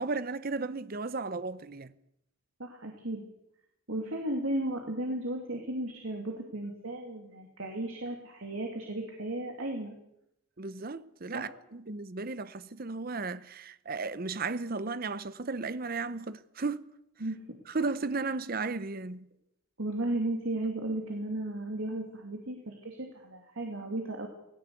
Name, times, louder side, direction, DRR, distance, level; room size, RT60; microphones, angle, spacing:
voice 1, 0.0-1.9 10.6-16.8 17.7-19.3, right 3 dB, 45° right, 0.7 m, -35 dB
voice 2, 2.6-3.2 3.9-9.9 11.3-11.5 17.2-17.4 19.8-24.3, right 1 dB, 70° right, 2.9 m, -35 dB
18.0 x 17.5 x 8.3 m
head